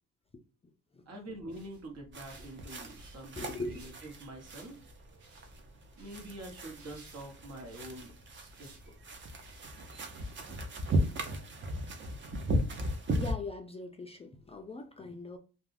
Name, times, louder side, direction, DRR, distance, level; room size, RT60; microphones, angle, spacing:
voice 1, 1.1-4.8 6.0-9.1, right 1 dB, 55° right, 1.1 m, -46 dB
sound 1, 1.3-10.8, right 1 dB, 80° right, 1.0 m, -57 dB
sound 2, 2.1-13.3, equal, 40° right, 0.6 m, -36 dB
voice 2, 3.4-3.8 13.2-15.4, left 2 dB, 20° left, 0.3 m, -40 dB
2.3 x 2.2 x 3.2 m
cardioid pair, 90°, 30 cm